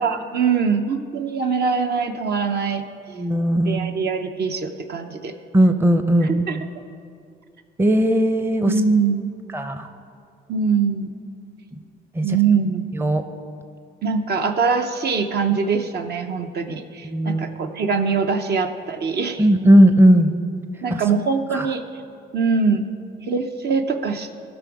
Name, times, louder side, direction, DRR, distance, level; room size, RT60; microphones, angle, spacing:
voice 1, 0.0-2.8 3.6-5.3 6.2-6.6 8.7-9.3 10.5-11.1 12.2-12.9 14.0-19.5 20.8-21.8 22.3-22.9 23.2-24.3, right 5 dB, 55° right, 6 dB, 0.8 m, -22 dB
voice 2, 3.1-3.8 5.5-6.3 7.8-8.7 9.5-9.9 12.2-12.3 13.0-13.2 17.0-17.6 19.4-20.3 20.9-21.0 21.5-21.7, equal, 10° right, 8 dB, 0.6 m, -17 dB
15.5 x 6.1 x 4.8 m, 2.5 s
cardioid pair, 90°, 20 cm